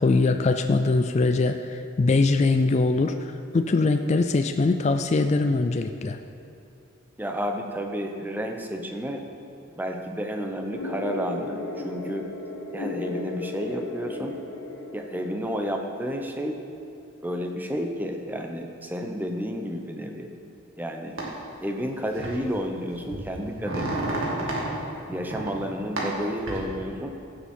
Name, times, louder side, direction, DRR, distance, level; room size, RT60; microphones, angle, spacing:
voice 1, 0.0-6.2, left 3 dB, 30° left, 7 dB, 0.3 m, -22 dB
voice 2, 7.2-9.2 9.7-12.3 12.7-14.4 14.9-16.6 17.2-20.3 20.8-21.2 21.6-24.6 25.1-27.2, equal, 10° right, 3 dB, 0.7 m, -31 dB
sound 1, 10.7-15.7, left 2 dB, 70° left, 1.4 m, -35 dB
sound 2, 21.2-21.3 22.2-22.4 22.9-24.7 25.1-25.5 26.0-26.6, right 2 dB, 75° right, 2.2 m, -30 dB
15.5 x 7.2 x 4.4 m, 2.8 s
head